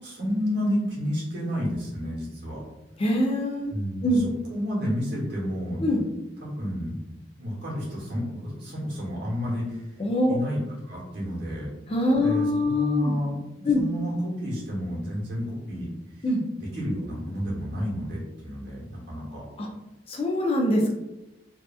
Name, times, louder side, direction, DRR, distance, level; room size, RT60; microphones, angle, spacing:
voice 1, 0.0-2.6 3.7-4.2 4.5-5.8 6.4-6.9 7.4-9.9 10.3-11.7 12.1-15.9 16.2-16.3 16.6-19.5, equal, 65° right, -4 dB, 1.0 m, -30 dB
voice 2, 3.0-3.7 4.0-4.2 5.8-6.0 10.0-10.3 11.9-13.1 13.6-13.8 16.2-16.4 19.6-19.7 20.1-20.9, left 1 dB, 30° left, -1 dB, 0.4 m, -23 dB
2.7 x 2.3 x 2.3 m, 0.97 s
head